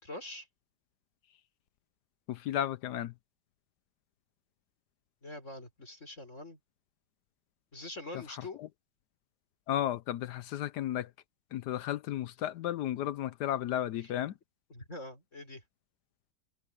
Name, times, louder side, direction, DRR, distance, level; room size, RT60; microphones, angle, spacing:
voice 1, 0.0-0.5 5.2-6.6 7.7-8.6 14.0-14.1 14.7-15.6, left 2 dB, 40° left, 4.8 m, -44 dB
voice 2, 2.3-3.1 8.3-8.7 9.7-11.1 11.5-14.3, left 12 dB, 70° left, 1.2 m, -34 dB
omnidirectional pair, 1.9 m